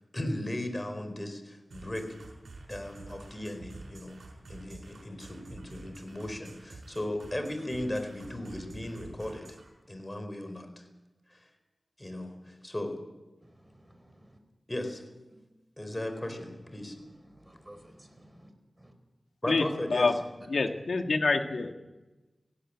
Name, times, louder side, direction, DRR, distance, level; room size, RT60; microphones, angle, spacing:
voice 1, 0.1-2.1 2.7-4.2 4.5-9.4 9.9-10.9 11.3-11.5 12.0-13.0 14.7-15.0 15.8-17.0 19.4-20.1, left 1 dB, 20° left, 6 dB, 4.4 m, -36 dB
sound 1, 1.7-9.7, right 2 dB, 85° right, 5.5 m, -49 dB
voice 2, 13.4-14.4 16.8-18.5 18.8-18.9, right 1 dB, 15° right, 7 dB, 4.4 m, -55 dB
voice 3, 20.5-21.7, left 3 dB, 75° left, 5 dB, 2.0 m, -26 dB
18.5 x 17.0 x 8.7 m, 1.1 s
wide cardioid pair, 70°, 0 cm